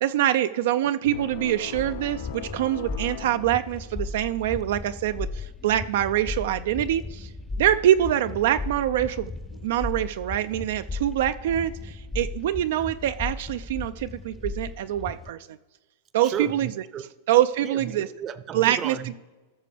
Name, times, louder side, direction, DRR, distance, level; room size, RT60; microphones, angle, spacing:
voice 1, 0.0-7.3 7.6-9.3 9.6-15.4 16.1-16.7 17.3-18.1 18.5-19.0, right 12 dB, 70° right, 0.3 m, -24 dB
sound 1, 1.0-4.4, left 9 dB, 70° left, 0.5 m, -40 dB
sound 2, 1.7-15.3, left 3 dB, 10° left, 0.4 m, -36 dB
voice 2, 16.2-17.1 17.6-19.2, right 8 dB, 30° right, 0.6 m, -34 dB
18.5 x 6.7 x 3.4 m
hypercardioid pair, 130°, 0 cm